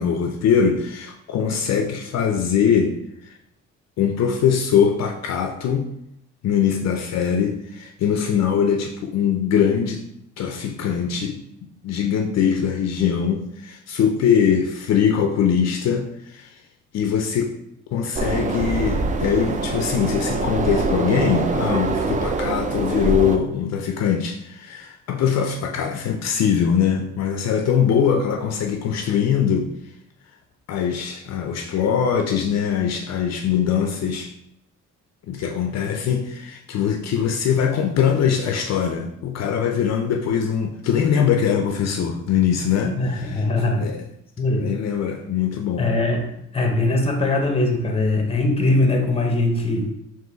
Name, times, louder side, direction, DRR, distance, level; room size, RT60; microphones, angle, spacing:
voice 1, 0.0-2.9 4.0-5.9 6.4-10.1 10.4-11.4 11.8-16.6 16.9-17.6 17.9-29.7 30.7-34.3 35.3-43.4 43.7-44.0 44.5-45.9, left 7 dB, 60° left, 4 dB, 0.5 m, -22 dB
sound 1, 18.2-23.4, right 3 dB, 25° right, 0.3 m, -24 dB
voice 2, 42.8-43.8 44.4-44.7 45.8-46.3 46.5-49.9, left 2 dB, 20° left, 3 dB, 0.8 m, -21 dB
3.7 x 2.6 x 3.8 m, 0.78 s
cardioid pair, 90°, 30 cm